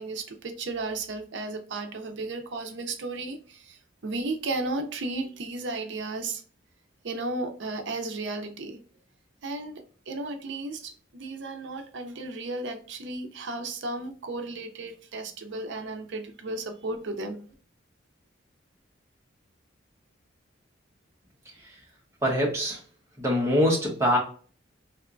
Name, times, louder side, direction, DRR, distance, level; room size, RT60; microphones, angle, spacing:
voice 1, 0.0-6.4 7.0-8.8 9.4-17.4, right 2 dB, 65° right, 6 dB, 0.5 m, -34 dB
voice 2, 22.2-22.8 23.2-24.2, equal, 15° right, -2 dB, 0.9 m, -23 dB
3.4 x 2.9 x 2.5 m, 0.42 s
head